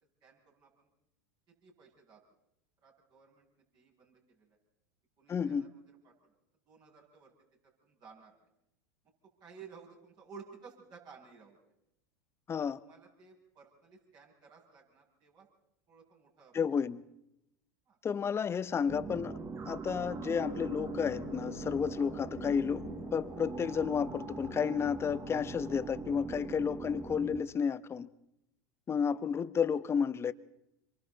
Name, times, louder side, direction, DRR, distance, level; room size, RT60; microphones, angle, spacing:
voice 1, 0.2-0.9 1.5-2.2 2.8-4.6 5.2-6.4 6.7-7.3 7.6-8.5 9.4-11.6 12.8-15.5 15.9-16.8 17.9-18.0 26.8-26.9 29.1-29.3, right 5 dB, 45° right, 7.4 m, -56 dB
voice 2, 5.3-5.7 12.5-12.8 16.5-17.0 18.0-19.4 19.7-28.1 28.9-30.3, left 6 dB, 25° left, 0.9 m, -32 dB
sound 1, 18.9-27.4, right 4 dB, 30° right, 1.5 m, -41 dB
sound 2, 20.6-26.1, left 11 dB, 70° left, 2.0 m, -51 dB
27.0 x 24.0 x 4.1 m
hypercardioid pair, 90°, 10 cm